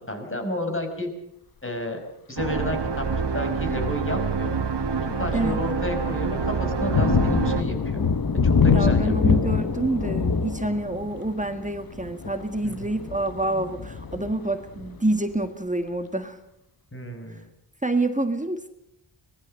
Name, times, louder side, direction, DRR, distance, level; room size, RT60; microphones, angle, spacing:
voice 1, 0.1-1.1 1.6-2.0 2.3-3.1 3.3-4.6 5.0-8.0 8.4-9.4 12.6-12.9 16.9-17.4, left 1 dB, 25° left, 5 dB, 5.2 m, -31 dB
sound 1, 2.4-7.6, right 5 dB, 55° right, 1.5 m, -27 dB
Thunder, 3.1-3.4 4.0-4.1 4.6-15.1, left 5 dB, 45° left, 1.1 m, -25 dB
voice 2, 8.7-16.4 17.8-18.7, right 2 dB, 15° right, 7 dB, 1.7 m, -27 dB
25.0 x 20.5 x 6.6 m, 0.76 s
wide cardioid pair, 115°, 50 cm